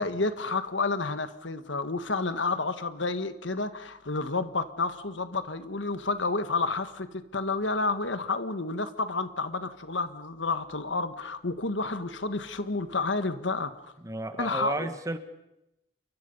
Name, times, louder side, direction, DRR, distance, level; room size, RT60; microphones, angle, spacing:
voice 1, 0.0-13.7 14.4-14.9, left 3 dB, 90° left, 11 dB, 1.6 m, -30 dB
voice 2, 14.0-15.2, right 2 dB, 20° right, 9 dB, 1.6 m, -33 dB
29.0 x 23.5 x 5.5 m, 0.88 s
head